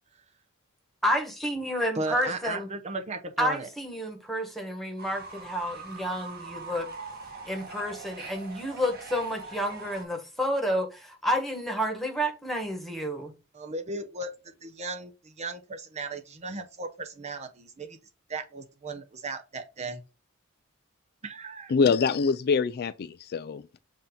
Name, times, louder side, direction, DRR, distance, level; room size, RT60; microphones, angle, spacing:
voice 1, 1.0-2.7 3.4-6.9 7.5-13.3, equal, ahead, 1.5 m, -30 dB
voice 2, 2.0-3.7 13.5-14.3 14.6-18.0 18.3-20.0 21.2-21.7, right 3 dB, 30° right, 0.7 m, -36 dB
Fowl / Bird, 5.0-10.0, right 4 dB, 45° right, 1.8 m, -42 dB
voice 3, 21.7-23.8, left 5 dB, 45° left, 0.3 m, -25 dB
7.5 x 2.8 x 5.2 m
head